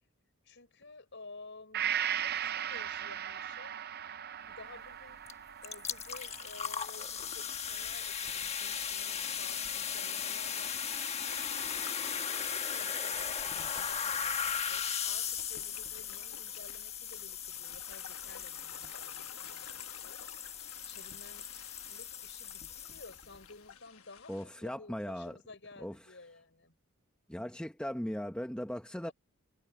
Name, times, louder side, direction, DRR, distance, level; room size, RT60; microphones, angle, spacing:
voice 1, 0.4-1.8 2.1-3.8 4.5-21.5 21.9-26.8 29.0-29.1, left 3 dB, 55° left, 6.2 m, -54 dB
Gong, 1.7-9.4 9.8-9.9, right 10 dB, 45° right, 0.6 m, -39 dB
sound 1, 5.3-5.4 5.6-23.4, left 7 dB, 30° left, 1.3 m, -37 dB
sound 2, 9.0-24.4, left 7 dB, 75° left, 1.2 m, -53 dB
voice 2, 24.3-25.4 25.8-26.0 27.3-29.1, equal, 5° left, 0.8 m, -38 dB
head